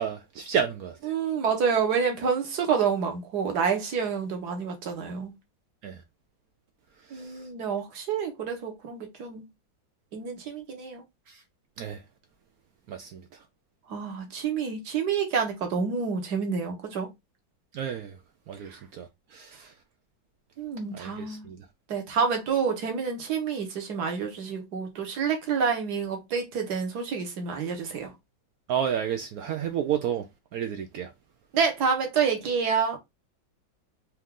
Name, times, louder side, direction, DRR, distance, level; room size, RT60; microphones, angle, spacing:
voice 1, 0.0-1.1 5.8-6.0 7.0-7.5 11.3-11.4 11.8-12.0 12.9-13.4 17.7-18.2 18.5-19.7 20.9-21.7 28.7-31.1, right 8 dB, 80° right, 0.8 m, -32 dB
voice 2, 1.1-5.3 7.1-9.5 10.1-11.0 13.9-17.1 18.7-18.8 20.6-21.5 21.9-28.1 31.5-33.0, right 6 dB, 60° right, 1.6 m, -28 dB
4.6 x 2.5 x 3.6 m
omnidirectional pair, 2.1 m